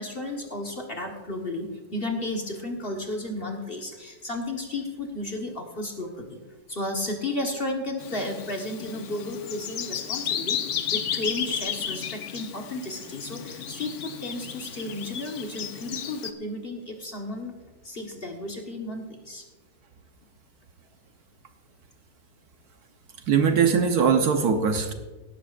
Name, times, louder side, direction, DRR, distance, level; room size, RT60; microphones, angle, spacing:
voice 1, 0.0-6.4 6.7-10.6 10.9-17.5 17.8-19.4, left 1 dB, 35° left, 1 dB, 1.4 m, -33 dB
Bird vocalization bird call bird song, 8.0-16.3, left 8 dB, 60° left, 0.8 m, -33 dB
voice 2, 23.3-24.9, right 6 dB, 65° right, 6 dB, 1.3 m, -21 dB
17.0 x 12.0 x 2.5 m, 1.2 s
omnidirectional pair, 1.9 m